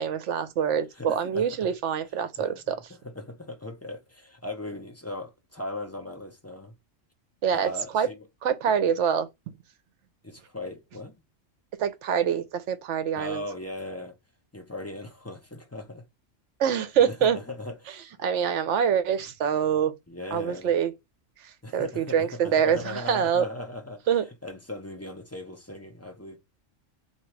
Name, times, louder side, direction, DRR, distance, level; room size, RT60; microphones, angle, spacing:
voice 1, 0.0-2.8 7.4-8.1 8.4-9.3 11.8-13.4 16.6-17.4 18.2-19.9 20.3-20.9 21.7-23.4 24.1-24.2, right 8 dB, 70° right, 0.9 m, -25 dB
voice 2, 0.9-1.7 2.4-6.7 7.5-8.3 10.2-11.2 13.2-14.1 14.5-16.0 17.1-18.0 20.1-20.7 21.6-24.0 24.4-26.4, left 1 dB, 15° left, 0.5 m, -38 dB
2.9 x 2.8 x 4.5 m
omnidirectional pair, 1.3 m